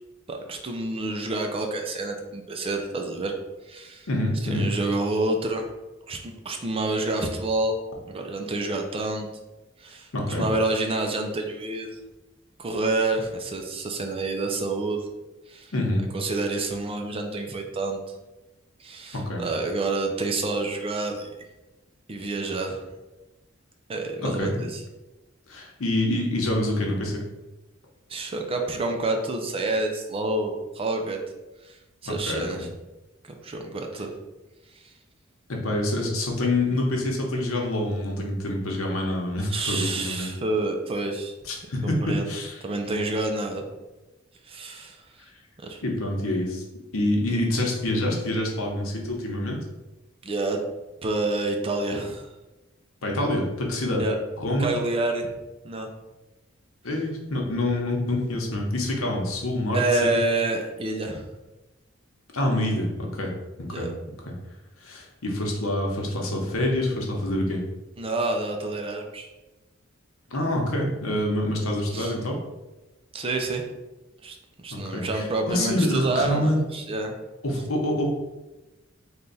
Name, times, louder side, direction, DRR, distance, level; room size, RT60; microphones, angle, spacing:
voice 1, 0.3-3.3 3.6-4.1 4.4-5.7 6.1-7.7 8.1-9.3 9.8-12.0 12.6-15.1 15.5-15.7 16.1-18.0 18.8-21.3 22.1-22.9 23.9-24.8 28.1-31.2 31.6-31.8 32.0-32.7 33.2-34.1 34.7-34.9 39.5-41.3 41.8-42.3 42.6-43.6 44.4-45.0 45.6-45.8 50.2-50.6 51.0-52.3 54.0-54.2 54.6-55.3 55.6-55.9 59.7-61.3 63.7-63.9 68.0-69.3 71.9-72.1 73.1-73.6 74.2-77.1, right 2 dB, 25° right, 3 dB, 0.4 m, -28 dB
voice 2, 4.1-4.7 10.1-10.4 15.7-16.0 19.1-19.4 24.2-24.5 25.5-27.2 32.0-32.6 35.5-40.3 41.4-42.5 45.8-46.6 46.9-49.6 53.0-54.0 54.4-54.7 56.8-60.1 62.3-63.3 63.6-63.9 64.3-64.4 64.8-67.6 70.3-72.4 74.7-76.6 77.4-78.1, left 1 dB, 90° left, 0 dB, 0.9 m, -26 dB
3.4 x 2.3 x 4.0 m, 1.0 s
head